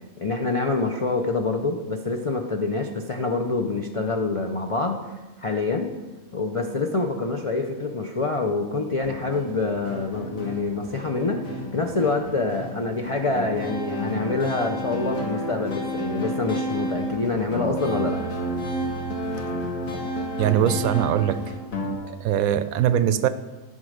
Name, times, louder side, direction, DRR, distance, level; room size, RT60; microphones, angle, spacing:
voice 1, 0.2-5.0 5.4-5.9 6.3-11.4 11.7-18.2, left 3 dB, 45° left, 2 dB, 0.4 m, -26 dB
sound 1, 9.0-22.0, equal, 70° left, 2.0 m, -31 dB
voice 2, 20.2-21.4 22.0-23.3, right 10 dB, 75° right, 12 dB, 1.0 m, -22 dB
11.0 x 5.1 x 6.4 m, 1.2 s
omnidirectional pair, 1.5 m